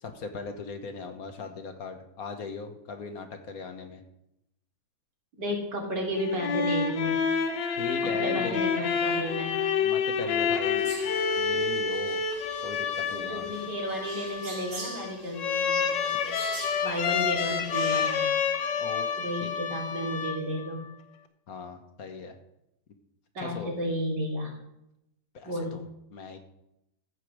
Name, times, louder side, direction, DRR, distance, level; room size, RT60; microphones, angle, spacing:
voice 1, 0.0-4.0 7.7-8.6 9.8-10.9 11.4-12.2 12.6-13.4 18.8-19.0 19.4-19.5 21.5-22.3 23.4-23.7 25.3-25.8 26.1-26.4, left 4 dB, 55° left, 6 dB, 1.5 m, -38 dB
voice 2, 5.4-7.1 8.2-9.5 13.1-16.3 16.8-18.2 19.2-20.8 23.3-24.5 25.4-25.8, equal, 70° right, -2 dB, 3.4 m, -32 dB
sound 1, 6.2-20.8, left 6 dB, 80° left, 1.6 m, -29 dB
sound 2, 10.8-18.4, right 3 dB, 85° right, 2.8 m, -44 dB
14.0 x 5.2 x 6.2 m, 0.82 s
omnidirectional pair, 2.0 m